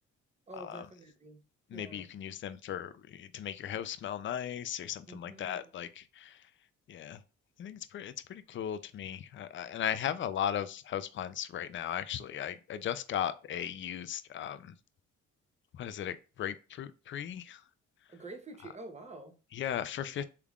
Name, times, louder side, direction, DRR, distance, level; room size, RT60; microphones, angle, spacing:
voice 1, 0.5-1.4 1.7-2.1 5.1-5.7 18.1-19.3, right 2 dB, 25° right, 0.8 m, -47 dB
voice 2, 1.7-6.4 6.9-7.2 7.6-14.7 15.7-17.6 19.5-20.2, left 10 dB, 40° left, 0.4 m, -37 dB
3.5 x 3.3 x 2.4 m
cardioid pair, 90°, 30 cm